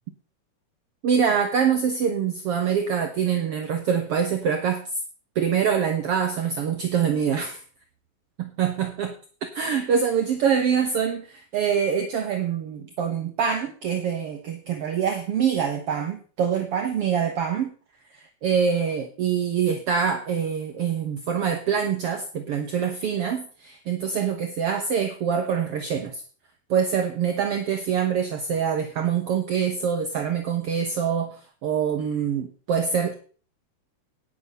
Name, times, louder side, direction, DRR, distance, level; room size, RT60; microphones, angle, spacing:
voice 1, 1.0-4.8 5.4-7.6 8.4-9.1 9.5-17.7 18.1-26.2 26.7-33.2, right 7 dB, 60° right, 6 dB, 2.0 m, -25 dB
17.5 x 7.6 x 5.6 m, 0.41 s
omnidirectional pair, 3.4 m